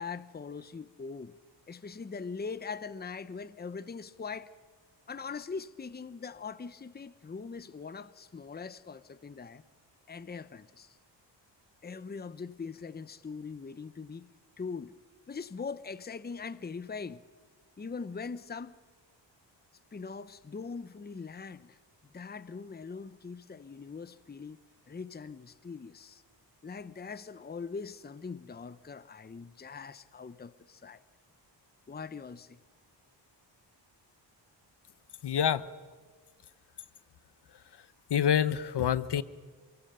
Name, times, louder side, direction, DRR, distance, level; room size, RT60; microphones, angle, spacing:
voice 1, 0.0-1.4 1.7-4.5 5.1-9.6 10.1-11.0 11.8-14.3 14.6-14.9 15.3-17.2 17.8-18.7 19.9-21.8 22.1-24.6 24.9-26.2 26.6-31.0 31.9-32.6, left 5 dB, 20° left, 0.8 m, -41 dB
voice 2, 35.2-35.6 38.1-39.2, left 9 dB, 65° left, 1.0 m, -26 dB
27.5 x 23.5 x 6.9 m
cardioid pair, 90°, 44 cm